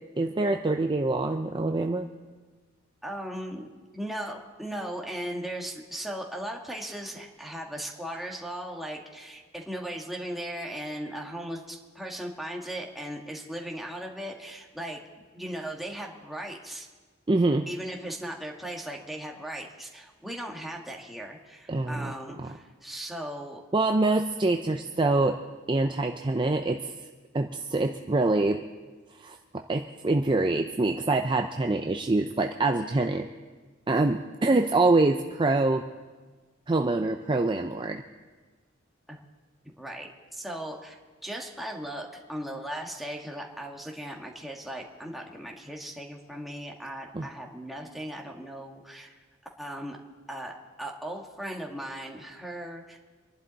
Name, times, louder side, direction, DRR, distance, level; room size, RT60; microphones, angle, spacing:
voice 1, 0.2-2.1 17.3-17.7 21.7-22.1 22.4-22.5 23.7-25.4 25.7-26.9 27.3-28.6 29.2-33.2 33.9-35.8 36.7-38.0 47.1-47.3, right 2 dB, 25° right, 4 dB, 0.5 m, -25 dB
voice 2, 3.0-3.7 3.9-15.0 15.3-16.9 17.7-23.6 39.1-39.2 39.8-40.9 41.2-49.1 49.6-50.0 50.3-50.5 50.8-53.0, right 1 dB, ahead, -1 dB, 1.6 m, -37 dB
26.5 x 11.5 x 4.1 m, 1.4 s
head